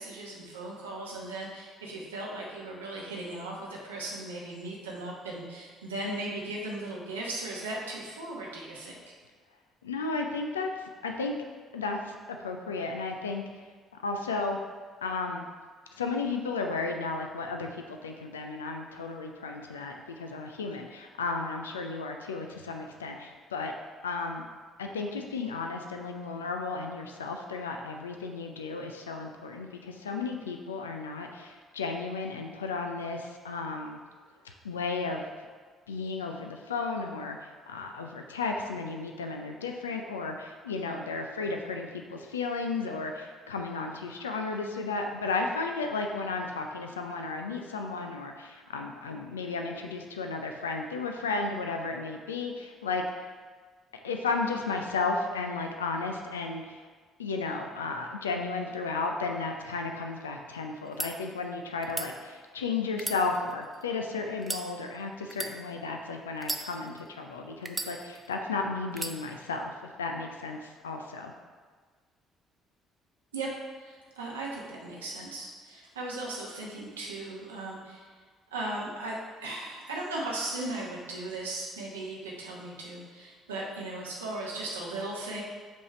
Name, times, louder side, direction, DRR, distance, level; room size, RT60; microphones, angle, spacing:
voice 1, 0.0-9.0 73.3-73.5 73.8-78.1 78.5-85.4, right 2 dB, 85° right, -3 dB, 1.0 m, -37 dB
voice 2, 9.8-11.4 11.7-13.6 14.0-14.6 15.0-15.5 16.0-23.7 24.0-24.4 24.8-34.0 34.4-35.2 35.9-53.0 54.0-56.8 57.2-69.7 70.0-71.3, left 4 dB, 90° left, 3 dB, 0.4 m, -34 dB
sound 1, 60.8-61.1 61.8-62.1 62.9-63.8 64.4-64.7 65.3-65.5 66.4-67.1 67.7-68.3 68.9-69.2, right 2 dB, 20° right, 0.6 m, -35 dB
5.2 x 3.5 x 5.5 m, 1.5 s
hypercardioid pair, 50°, 0 cm